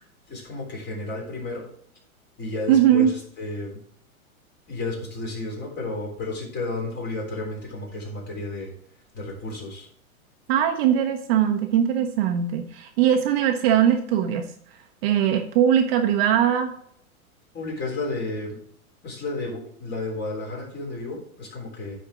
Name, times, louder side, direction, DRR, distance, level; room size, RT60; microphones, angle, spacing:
voice 1, 0.3-1.7 2.4-3.8 4.7-8.7 9.1-9.9 17.5-18.6 19.0-21.9, left 2 dB, 25° left, -2 dB, 3.5 m, -32 dB
voice 2, 2.7-3.1 10.5-14.5 15.0-16.7, right 9 dB, 45° right, 5 dB, 0.9 m, -20 dB
9.9 x 4.5 x 4.8 m, 0.63 s
hypercardioid pair, 130°, 43 cm